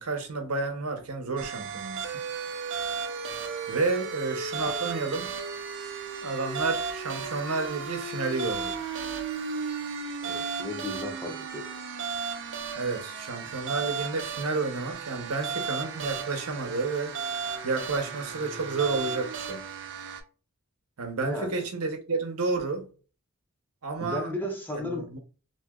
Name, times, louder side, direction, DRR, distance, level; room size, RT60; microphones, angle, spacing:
voice 1, 0.0-2.2 3.7-5.3 6.2-8.8 12.8-17.2 17.6-19.6 21.0-22.9 23.8-24.3 25.1-25.2, right 3 dB, 85° right, 0.8 m, -30 dB
sound 1, 1.4-20.2, right 5 dB, 55° right, 0.5 m, -35 dB
voice 2, 10.2-11.7 21.2-21.7 24.0-25.2, left 1 dB, 10° left, 0.7 m, -35 dB
2.9 x 2.8 x 2.3 m
head